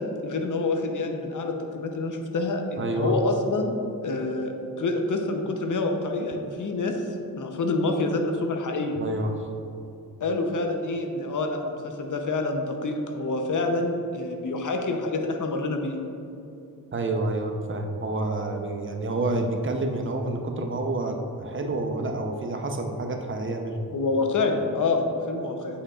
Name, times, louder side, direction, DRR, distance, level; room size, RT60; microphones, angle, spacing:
voice 1, 0.0-7.0 7.3-9.0 10.2-16.0 23.9-25.8, left 3 dB, 55° left, 4 dB, 0.8 m, -27 dB
voice 2, 2.8-3.1 9.0-9.5 16.9-23.8, right 2 dB, 35° right, 3 dB, 0.7 m, -28 dB
8.5 x 5.0 x 2.4 m, 2.7 s
cardioid pair, 60°, 36 cm